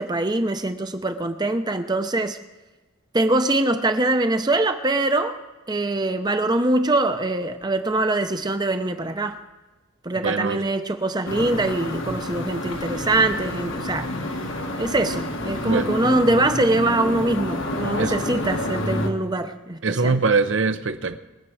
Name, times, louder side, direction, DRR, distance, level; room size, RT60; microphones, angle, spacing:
voice 1, 0.0-2.4 3.1-5.4 5.7-9.4 10.0-14.1 14.8-20.2, right 2 dB, 20° right, 8 dB, 0.7 m, -23 dB
voice 2, 10.2-10.6 15.6-16.0 18.0-18.1 19.8-21.2, right 4 dB, 60° right, 10 dB, 0.7 m, -22 dB
sound 1, 11.3-19.1, left 1 dB, 60° left, 1.3 m, -28 dB
22.5 x 7.4 x 4.8 m, 1.1 s
head